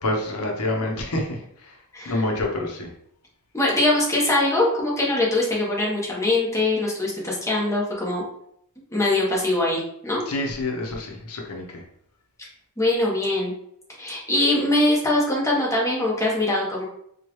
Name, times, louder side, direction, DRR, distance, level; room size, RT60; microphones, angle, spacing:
voice 1, 0.0-1.7 2.1-2.9 10.3-11.8, left 2 dB, 90° left, 1 dB, 0.8 m, -27 dB
voice 2, 3.5-8.2 8.9-10.2 12.4-12.5 12.8-13.5 14.0-16.9, left 1 dB, 15° left, -4 dB, 1.0 m, -22 dB
4.5 x 2.3 x 3.0 m, 0.71 s
head